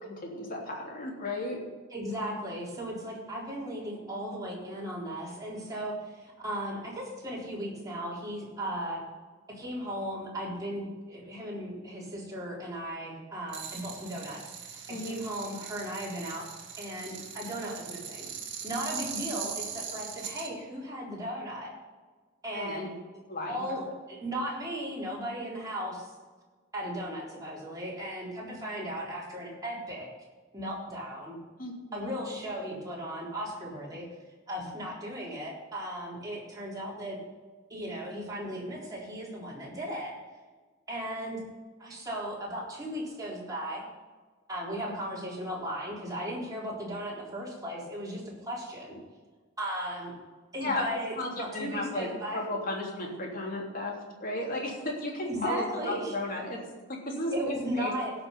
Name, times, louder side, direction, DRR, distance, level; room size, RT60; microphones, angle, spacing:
voice 1, 0.0-1.6 14.9-15.2 22.5-23.0 23.3-23.8 31.6-32.1 50.6-56.6 56.9-57.9, left 1 dB, 45° left, -1 dB, 3.2 m, -34 dB
voice 2, 1.9-9.0 9.5-14.7 15.0-16.5 16.8-18.3 18.6-21.8 22.4-22.9 23.5-23.8 24.1-26.1 26.7-30.1 30.5-31.4 31.9-34.1 34.5-37.2 37.7-40.1 40.9-41.4 41.8-43.8 44.5-49.0 49.6-50.1 50.5-52.4 55.3-56.1 57.3-58.1, equal, 20° right, -5 dB, 3.9 m, -36 dB
sound 1, 13.5-20.5, right 7 dB, 60° right, 2.0 m, -40 dB
17.0 x 6.2 x 5.5 m, 1.4 s
head